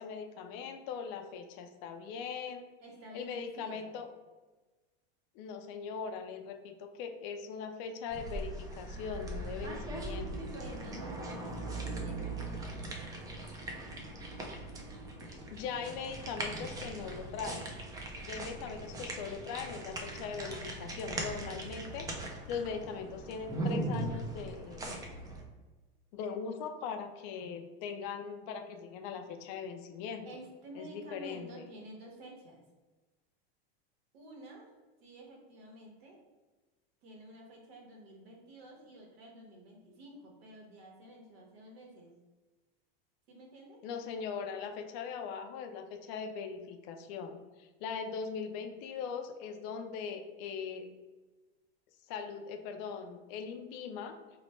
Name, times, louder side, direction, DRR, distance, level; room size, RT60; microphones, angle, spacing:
voice 1, 0.0-2.7 3.1-4.1 5.3-10.5 15.3-17.7 18.2-22.1 22.5-24.9 26.1-30.3 30.7-31.5 43.8-50.9 52.1-54.2, left 6 dB, 50° left, 6 dB, 0.4 m, -40 dB
voice 2, 2.8-3.9 10.6-11.5 12.0-13.4 30.2-32.6 34.1-34.7 35.0-36.2 37.0-42.1 43.3-43.8 49.0-49.1, right 1 dB, 85° right, 0 dB, 1.2 m, -51 dB
sound 1, 8.1-25.4, right 2 dB, 15° right, 0.3 m, -40 dB
3.1 x 2.1 x 4.2 m, 1.2 s
supercardioid pair, 140°, 30 cm